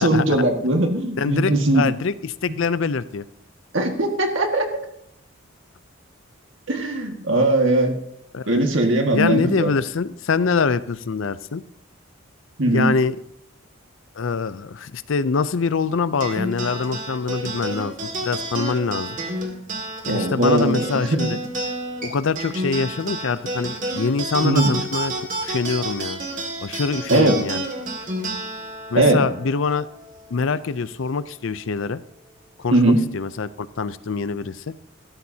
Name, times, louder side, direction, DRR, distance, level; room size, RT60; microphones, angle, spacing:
voice 1, 0.0-1.8 3.7-4.7 6.7-7.9 8.5-9.7 12.6-12.9 20.0-21.3 24.4-24.7 27.1-27.3 28.9-29.2 32.7-33.0, right 2 dB, 65° right, 3 dB, 1.8 m, -19 dB
voice 2, 1.2-3.2 8.3-8.7 9.1-11.6 12.6-13.2 14.2-19.2 20.1-21.4 22.0-25.1 25.4-26.2 26.6-27.6 28.9-29.9 30.3-32.0 32.6-34.6, left 4 dB, 65° left, 15 dB, 0.5 m, -24 dB
sound 1, 16.2-30.9, right 1 dB, 40° right, 2.0 m, -30 dB
16.0 x 13.0 x 2.8 m, 0.77 s
head